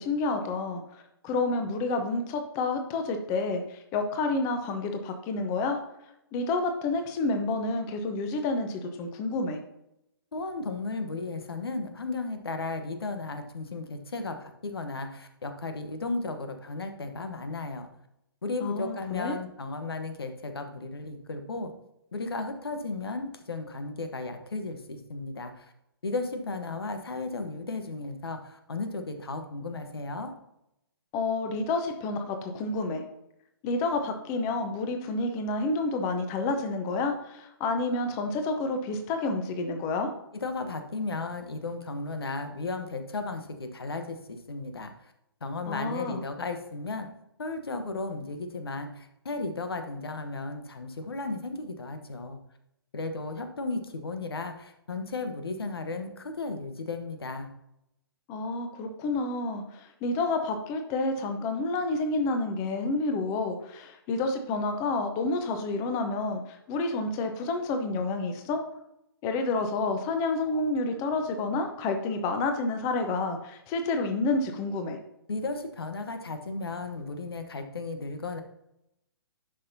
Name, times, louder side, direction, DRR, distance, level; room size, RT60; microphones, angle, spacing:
voice 1, 0.0-5.8 6.3-9.6 18.6-19.4 31.1-33.0 33.6-40.1 45.7-46.2 58.3-68.6 69.2-75.0, left 3 dB, 25° left, 6 dB, 0.9 m, -29 dB
voice 2, 10.3-17.9 18.4-21.7 22.1-25.7 26.0-30.3 40.3-44.9 45.4-47.1 47.4-52.4 52.9-57.5 75.3-78.4, left 3 dB, 70° left, 7 dB, 1.1 m, -35 dB
11.5 x 5.8 x 2.8 m, 0.83 s
figure-of-eight pair, 130°, 13 cm